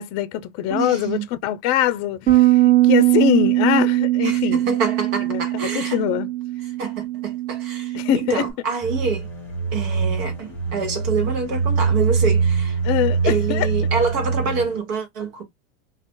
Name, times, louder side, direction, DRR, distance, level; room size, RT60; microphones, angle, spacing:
voice 1, 0.0-4.6 5.3-5.4 5.7-6.3 7.9-8.5 12.8-13.7, left 11 dB, 40° left, 0.6 m, -23 dB
voice 2, 0.7-1.3 4.2-6.0 6.8-9.3 9.7-12.8 13.2-15.4, right 5 dB, 60° right, 1.4 m, -26 dB
Bass guitar, 2.3-8.5, right 16 dB, 30° right, 1.1 m, -20 dB
sound 1, 8.8-14.8, right 5 dB, 5° left, 1.4 m, -23 dB
2.4 x 2.3 x 3.7 m
supercardioid pair, 125°, 38 cm